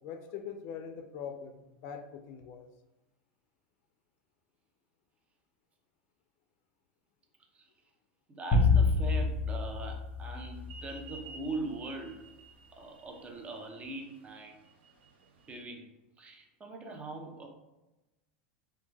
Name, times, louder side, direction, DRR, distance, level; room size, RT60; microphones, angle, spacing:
voice 1, 0.0-2.7, left 7 dB, 55° left, 7 dB, 0.4 m, -42 dB
voice 2, 8.3-12.3 12.7-14.6 15.5-15.9 16.2-17.5, right 2 dB, 20° right, 2 dB, 0.5 m, -41 dB
sound 1, 8.5-11.0, left 3 dB, 30° left, 0.7 m, -27 dB
sound 2, 10.6-15.6, right 4 dB, 80° right, 0.4 m, -53 dB
2.1 x 2.1 x 3.1 m, 1.0 s
hypercardioid pair, 115°, 6 cm